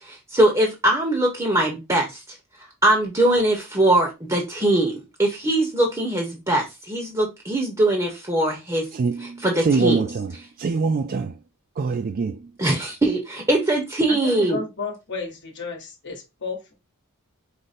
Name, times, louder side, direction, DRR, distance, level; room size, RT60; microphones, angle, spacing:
voice 1, 0.3-2.0 2.8-6.6 6.9-8.8 9.4-10.0 12.6-14.6, right 1 dB, 15° right, 0.9 m, -21 dB
voice 2, 8.9-10.3 10.6-11.4 11.8-12.5, right 4 dB, 40° right, 0.3 m, -24 dB
voice 3, 14.1-16.7, left 4 dB, 55° left, 1.1 m, -33 dB
5.0 x 2.1 x 4.1 m
head